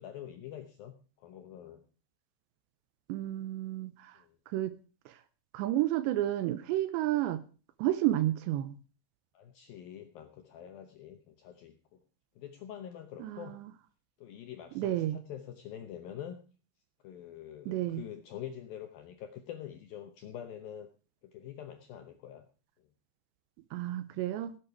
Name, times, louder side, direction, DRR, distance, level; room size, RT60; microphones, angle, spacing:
voice 1, 0.0-1.8 4.2-4.4 9.3-12.0 12.4-13.6 14.2-16.4 17.0-20.9 21.2-22.5, left 10 dB, 75° left, 2.1 m, -45 dB
voice 2, 3.1-4.2 4.5-4.8 5.1-5.2 5.5-7.4 7.8-8.7 13.2-13.6 14.8-15.2 17.7-18.0 23.7-24.6, right 14 dB, 80° right, 2.7 m, -31 dB
17.0 x 8.8 x 4.7 m
omnidirectional pair, 5.5 m